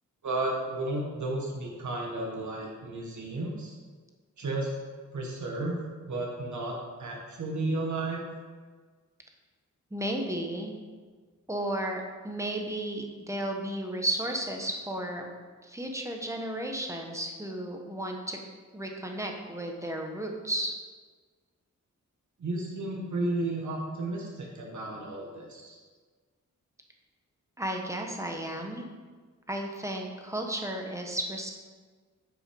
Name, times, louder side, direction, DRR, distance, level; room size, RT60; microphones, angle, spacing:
voice 1, 0.2-3.7 4.4-4.7 5.1-5.8 6.1-8.3 22.4-25.8, right 2 dB, 70° right, -2 dB, 1.5 m, -33 dB
voice 2, 9.9-10.7 11.5-15.3 15.6-18.4 18.7-20.7 27.6-28.8 29.5-31.5, right 1 dB, 10° right, 2 dB, 1.1 m, -33 dB
9.3 x 6.0 x 5.3 m, 1.5 s
wide cardioid pair, 150°, 31 cm